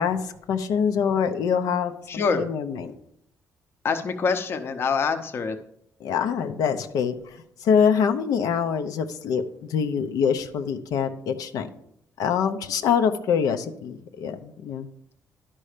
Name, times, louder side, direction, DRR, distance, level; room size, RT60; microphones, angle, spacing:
voice 1, 0.0-2.9 6.0-9.4 9.7-11.7 12.2-14.9, left 7 dB, 90° left, 7 dB, 0.7 m, -25 dB
voice 2, 2.1-2.5 3.8-5.6, left 5 dB, 40° left, 9 dB, 0.7 m, -25 dB
11.5 x 5.4 x 5.0 m, 0.74 s
cardioid pair, 175°, 6 cm